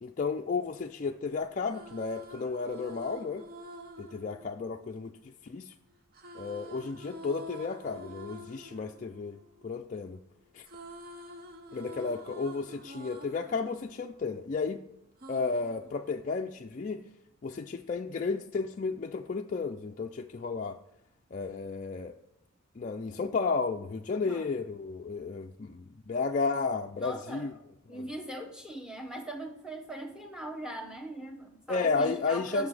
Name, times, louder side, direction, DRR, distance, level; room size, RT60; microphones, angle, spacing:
voice 1, 0.0-3.5 4.0-5.1 5.4-5.7 6.3-10.2 10.5-10.7 11.7-14.8 15.3-17.0 17.4-20.8 21.3-22.1 22.8-27.5 27.9-28.0 31.7-32.7, left 4 dB, 35° left, 3 dB, 0.3 m, -33 dB
sound 1, 1.6-5.5 6.1-10.2 10.5-14.7 15.2-16.6, equal, 45° right, 0.7 m, -48 dB
voice 2, 27.0-27.6 27.9-32.7, right 1 dB, 5° right, 3 dB, 1.0 m, -40 dB
9.5 x 6.8 x 4.8 m, 0.80 s
head